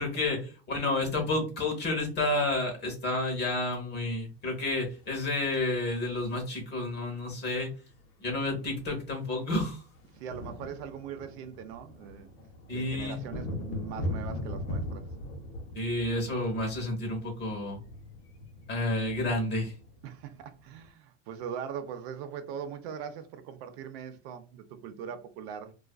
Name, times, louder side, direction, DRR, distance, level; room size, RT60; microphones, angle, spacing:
voice 1, 0.0-7.7 8.2-9.8 12.7-13.2 15.7-17.8 18.7-19.7, left 2 dB, 30° left, 0.9 m, -30 dB
sound 1, 5.1-6.7 8.0-8.1 8.3-8.5 8.8-20.9, left 1 dB, 80° left, 0.9 m, -40 dB
voice 2, 10.2-12.3 12.7-15.0 20.0-25.7, right 8 dB, 65° right, 0.5 m, -41 dB
2.4 x 2.3 x 2.2 m
supercardioid pair, 135°, 34 cm